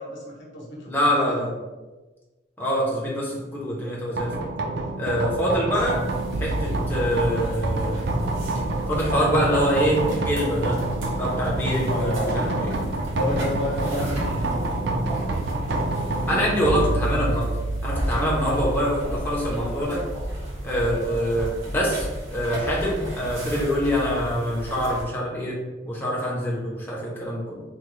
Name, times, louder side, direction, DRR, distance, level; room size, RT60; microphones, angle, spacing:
voice 1, 0.0-1.5 5.9-6.3 11.8-12.7 13.1-14.6 21.0-21.3, left 1 dB, 65° left, -3 dB, 0.9 m, -32 dB
voice 2, 0.9-1.5 2.6-4.5 5.0-6.0 6.4-8.0 8.9-10.8 11.1-12.7 16.3-17.5 17.8-20.0 20.6-25.6 25.9-27.6, equal, 10° left, -5 dB, 0.5 m, -25 dB
sound 1, 4.2-21.4, right 2 dB, 60° right, 0.4 m, -28 dB
sound 2, 5.7-25.0, equal, 80° right, 0.9 m, -34 dB
3.6 x 2.0 x 3.0 m, 1.2 s
head